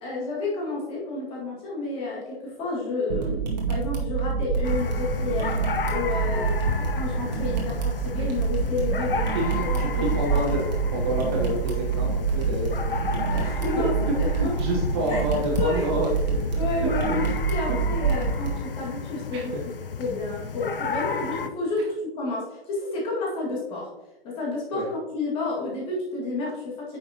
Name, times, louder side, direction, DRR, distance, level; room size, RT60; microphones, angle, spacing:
voice 1, 0.0-3.4 3.7-10.4 13.2-14.5 15.1-15.2 15.6-15.9 16.6-19.5 20.0-23.9 24.2-27.0, left 3 dB, 20° left, -4 dB, 2.1 m, -31 dB
sound 1, 3.1-18.5, right 5 dB, 45° right, 2.0 m, -27 dB
sound 2, 4.6-21.5, left 6 dB, 60° left, 0.8 m, -33 dB
voice 2, 9.3-13.3 13.8-13.9 14.4-17.2 17.7-17.8 19.3-19.6 24.7-24.9, right 1 dB, 25° right, -2 dB, 1.1 m, -29 dB
9.4 x 6.3 x 2.9 m, 1.0 s
figure-of-eight pair, 130°, 31 cm